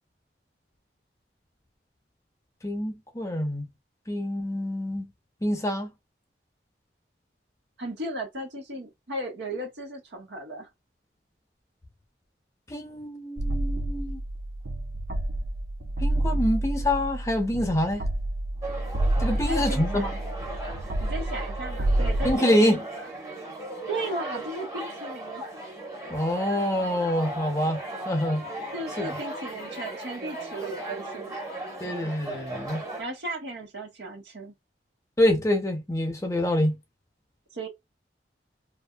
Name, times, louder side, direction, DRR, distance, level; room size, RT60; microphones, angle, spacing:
voice 1, 2.6-3.6 4.1-5.1 5.4-5.9 12.7-14.2 16.0-18.0 19.2-20.2 22.2-22.8 26.1-28.5 29.0-29.2 31.8-32.8 35.2-36.8, left 1 dB, 15° left, 0.6 m, -26 dB
voice 2, 7.8-10.7 19.4-20.2 21.0-22.7 23.0-23.1 23.9-25.4 28.7-31.3 33.0-34.5 37.5-37.7, right 1 dB, 80° right, 1.3 m, -36 dB
sound 1, 13.4-22.4, right 1 dB, 55° right, 0.4 m, -29 dB
sound 2, 18.6-33.0, right 2 dB, 20° right, 1.0 m, -37 dB
2.6 x 2.6 x 2.2 m
head